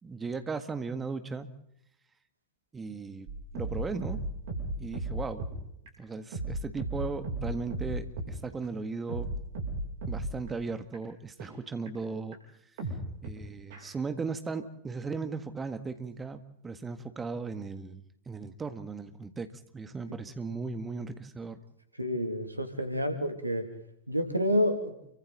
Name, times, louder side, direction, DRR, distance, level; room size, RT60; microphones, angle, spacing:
voice 1, 0.0-1.5 2.7-3.3 3.5-4.2 4.8-5.5 6.0-9.3 10.1-12.4 13.2-19.5 19.7-21.6, right 4 dB, 15° right, 10 dB, 1.8 m, -37 dB
sound 1, 3.3-5.5 5.9-6.0 6.3-8.3 8.6-8.7 9.1-10.5 10.9-11.0 11.4-11.5 11.9-12.0 12.3-12.4 12.8-13.3 13.7-13.8, right 1 dB, 55° right, 7.6 m, -35 dB
voice 2, 22.0-23.7 24.1-24.9, equal, 85° right, 7 dB, 2.8 m, -29 dB
30.0 x 24.0 x 4.2 m, 0.76 s
figure-of-eight pair, 90°, 0 cm